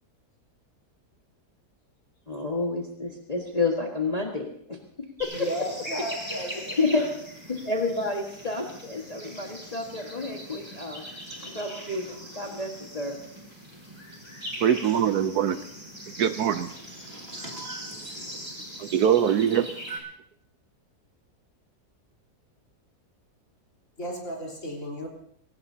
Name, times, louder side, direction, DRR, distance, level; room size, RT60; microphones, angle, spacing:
voice 1, 2.3-4.8 5.2-5.3 6.8-7.1 7.5-11.0 11.4-13.2, left 3 dB, 25° left, 0 dB, 1.6 m, -29 dB
sound 1, 5.2-20.0, equal, 15° right, 4.7 m, -41 dB
voice 2, 5.3-7.0 24.0-25.1, equal, 45° left, -1 dB, 4.4 m, -34 dB
voice 3, 11.3-11.8 12.1-12.3 16.7-19.0 19.9-20.0, right 2 dB, 35° right, 0 dB, 2.6 m, -43 dB
voice 4, 14.6-15.6 16.2-16.7 18.8-19.7, right 9 dB, 70° right, 10 dB, 1.2 m, -22 dB
23.0 x 18.0 x 2.8 m, 0.69 s
omnidirectional pair, 1.8 m